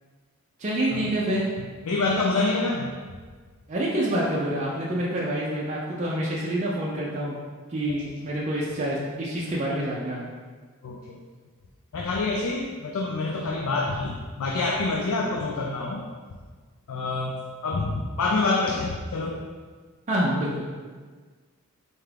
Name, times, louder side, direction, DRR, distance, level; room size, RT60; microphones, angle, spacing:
voice 1, 0.6-1.5 3.7-7.3 7.7-10.2 20.1-20.7, right 1 dB, 30° right, -5 dB, 0.4 m, -27 dB
voice 2, 1.9-2.9 10.8-11.3 11.9-16.0 16.9-17.4 17.6-19.5, left 3 dB, 80° left, 0 dB, 0.4 m, -27 dB
4.3 x 2.4 x 3.3 m, 1.5 s
head